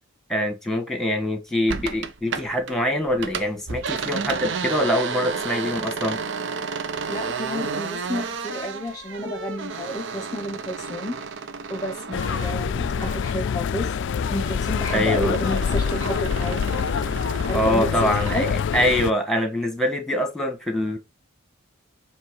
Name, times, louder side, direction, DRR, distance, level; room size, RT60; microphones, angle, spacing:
voice 1, 0.3-6.2 14.9-15.3 17.5-21.0, left 1 dB, ahead, 1.5 m, -24 dB
sound 1, 1.7-2.8 3.1-13.4 13.8-18.6, right 5 dB, 60° right, 0.7 m, -32 dB
voice 2, 7.1-11.2 11.7-13.9 14.3-16.8 17.5-18.5, equal, 20° left, 0.9 m, -31 dB
sound 2, 12.1-19.1, left 6 dB, 60° left, 0.3 m, -26 dB
7.4 x 3.2 x 4.8 m
head